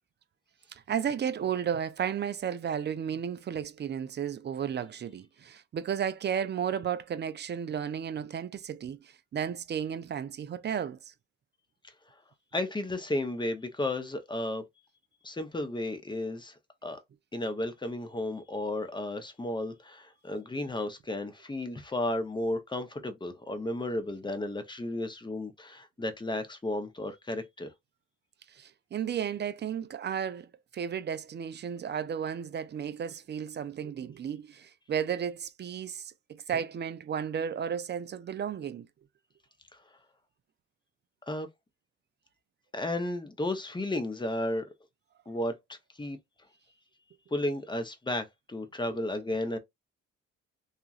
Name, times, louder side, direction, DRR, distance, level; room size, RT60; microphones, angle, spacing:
voice 1, 0.7-11.1 28.5-30.5 30.7-38.9, right 8 dB, 35° right, 0.4 m, -33 dB
voice 2, 12.5-14.6 15.2-16.5 16.8-17.0 17.3-27.7 41.3-41.5 42.7-44.7 45.3-45.5 46.0-46.2 47.3-49.6, left 1 dB, 15° left, 0.7 m, -33 dB
2.9 x 2.4 x 2.4 m
cardioid pair, 90°, 30 cm